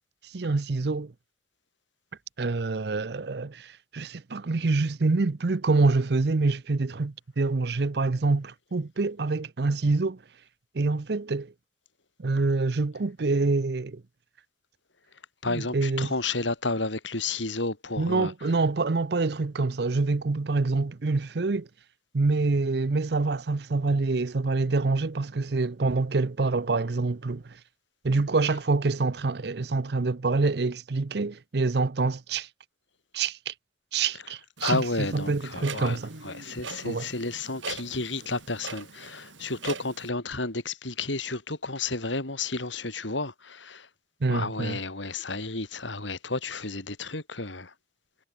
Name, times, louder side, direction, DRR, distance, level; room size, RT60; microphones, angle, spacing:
voice 1, 0.2-1.1 2.4-10.2 10.7-11.5 12.2-14.0 15.5-16.1 18.0-21.7 22.1-27.6 28.0-32.5 33.1-33.5 33.9-36.1 36.8-37.1 44.2-44.8, right 3 dB, 60° right, 0.6 m, -26 dB
voice 2, 15.4-18.3 34.6-43.9 44.3-47.7, left 3 dB, 80° left, 4.2 m, -32 dB
Clock, 34.6-40.1, right 5 dB, 85° right, 5.6 m, -41 dB
head